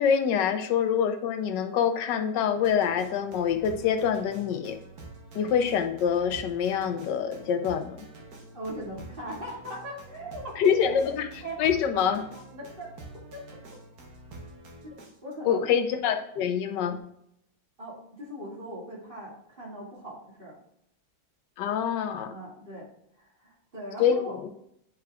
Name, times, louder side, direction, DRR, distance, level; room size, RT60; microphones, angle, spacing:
voice 1, 0.0-4.8 5.3-8.1 10.6-12.2 15.4-17.0 21.6-22.3 24.0-24.4, left 8 dB, 75° left, 8 dB, 1.3 m, -25 dB
sound 1, 2.5-15.3, right 2 dB, 60° right, 1.5 m, -47 dB
voice 2, 8.5-10.5 11.4-11.7 12.5-12.9 13.3-13.4 14.8-15.7 17.8-20.6 22.3-22.9 23.1-24.4, right 1 dB, 30° right, -6 dB, 2.4 m, -40 dB
9.5 x 4.6 x 2.4 m, 0.74 s
omnidirectional pair, 2.0 m